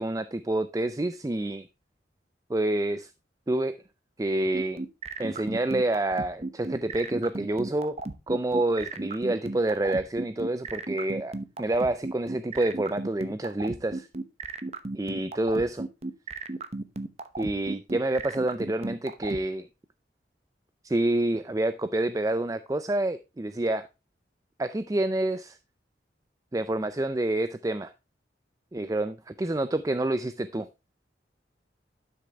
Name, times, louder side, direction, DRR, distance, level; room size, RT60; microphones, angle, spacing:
voice 1, 0.0-1.7 2.5-3.1 3.5-3.7 4.2-4.8 5.2-8.0 8.3-14.1 15.0-15.9 17.4-19.7 20.8-23.9 24.6-25.6 26.5-27.9 28.7-30.7, right 1 dB, 20° right, 0.4 m, -28 dB
sound 1, 4.5-19.4, right 2 dB, 35° right, 0.8 m, -34 dB
11.5 x 6.5 x 3.4 m
head